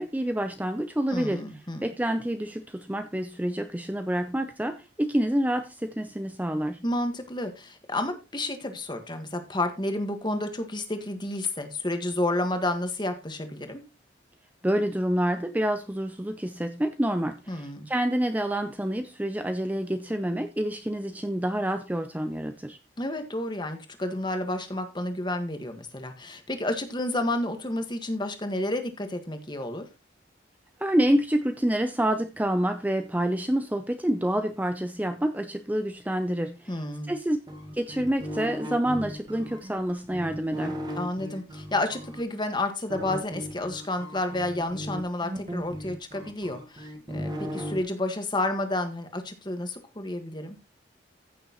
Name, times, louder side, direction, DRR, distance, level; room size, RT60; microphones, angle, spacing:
voice 1, 0.0-1.4 1.8-6.8 14.6-22.8 30.8-36.7 37.1-37.4 37.7-40.8, right 1 dB, 10° right, 0.5 m, -27 dB
voice 2, 1.1-1.9 6.8-13.8 17.5-17.9 23.0-29.8 36.7-37.1 41.0-50.6, left 1 dB, 25° left, 1.6 m, -30 dB
sound 1, 37.5-42.2 42.9-47.8, equal, 25° right, 1.7 m, -36 dB
15.0 x 6.6 x 3.0 m
head